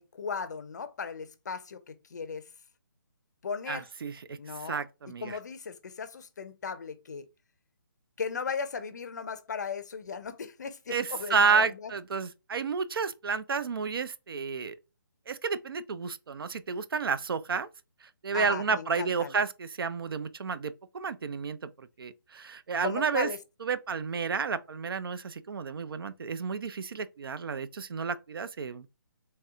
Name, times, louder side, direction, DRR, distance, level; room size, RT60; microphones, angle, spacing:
voice 1, 0.0-2.4 3.4-3.8 4.4-4.8 5.2-7.2 8.2-11.9 18.3-19.4 22.8-23.4, left 5 dB, 50° left, 0.5 m, -37 dB
voice 2, 3.7-4.4 4.6-5.4 10.9-14.8 15.3-17.7 18.2-23.3 23.6-28.9, right 5 dB, 75° right, 0.4 m, -31 dB
3.2 x 2.8 x 2.3 m
hypercardioid pair, 170°, 12 cm